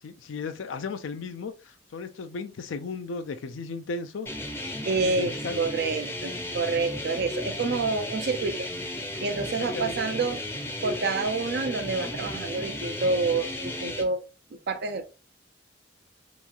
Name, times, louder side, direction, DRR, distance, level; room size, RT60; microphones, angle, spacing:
voice 1, 0.0-4.3 4.9-5.6 9.7-10.1, left 4 dB, 80° left, 0.4 m, -36 dB
sound 1, 4.3-14.0, left 1 dB, 15° left, 0.6 m, -34 dB
voice 2, 4.8-8.7 9.2-10.4 10.8-14.2 14.5-15.1, right 3 dB, 60° right, 0.4 m, -28 dB
3.0 x 2.3 x 2.5 m
head